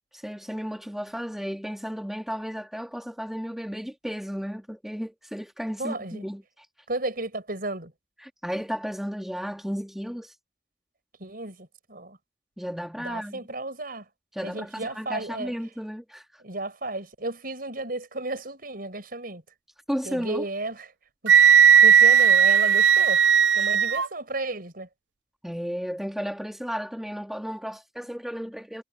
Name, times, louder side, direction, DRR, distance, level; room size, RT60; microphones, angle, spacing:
voice 1, 0.1-6.7 8.2-10.3 12.6-13.4 14.3-16.4 19.9-20.4 23.6-23.7 25.4-28.8, equal, ahead, 1.7 m, -34 dB
voice 2, 5.8-6.2 6.9-7.9 11.2-12.2 13.0-14.1 14.4-15.5 16.4-19.4 20.0-20.9 21.2-23.2 23.5-24.9, right 2 dB, 50° right, 6.4 m, -33 dB
Wind instrument woodwind instrument, 21.3-24.1, right 8 dB, 75° right, 0.6 m, -16 dB
head